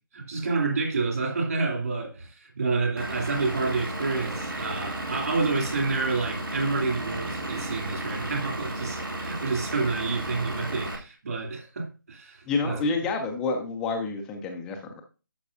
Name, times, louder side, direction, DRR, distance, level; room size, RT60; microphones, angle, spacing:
voice 1, 0.1-12.8, right 3 dB, 45° right, 2.6 m, -29 dB
Vehicle / Engine, 3.0-11.0, right 1 dB, 75° right, 2.4 m, -33 dB
voice 2, 12.5-15.0, left 4 dB, 5° left, 0.4 m, -29 dB
11.5 x 6.1 x 2.6 m
figure-of-eight pair, 155°, 11 cm